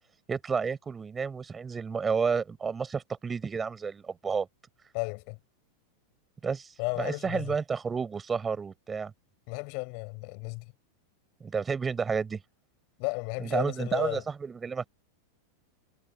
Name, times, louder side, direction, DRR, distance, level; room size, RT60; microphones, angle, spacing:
voice 1, 0.3-4.5 6.4-6.7 7.0-9.1 11.4-12.4 13.4-14.9, right 5 dB, 15° right, 6.4 m, -31 dB
voice 2, 4.9-5.4 6.8-7.6 9.5-10.7 13.0-14.2, left 39 dB, 45° left, 7.4 m, -34 dB
figure-of-eight pair, 90°, 0 cm